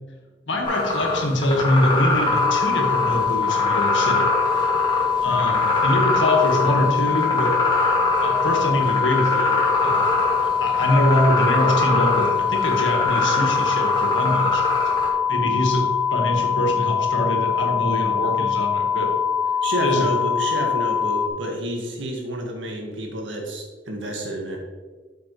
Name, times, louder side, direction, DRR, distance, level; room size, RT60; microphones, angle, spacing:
voice 1, 0.5-4.3 5.2-7.6 8.2-14.6 15.3-19.1 19.8-20.1, left 1 dB, 85° left, 2 dB, 1.7 m, -24 dB
sound 1, 0.6-15.1, left 1 dB, 25° left, 2.3 m, -24 dB
sound 2, 2.3-21.3, left 7 dB, ahead, 1.0 m, -23 dB
voice 2, 19.6-24.6, right 1 dB, 80° right, 1 dB, 1.9 m, -29 dB
8.6 x 7.5 x 3.2 m, 1.4 s
head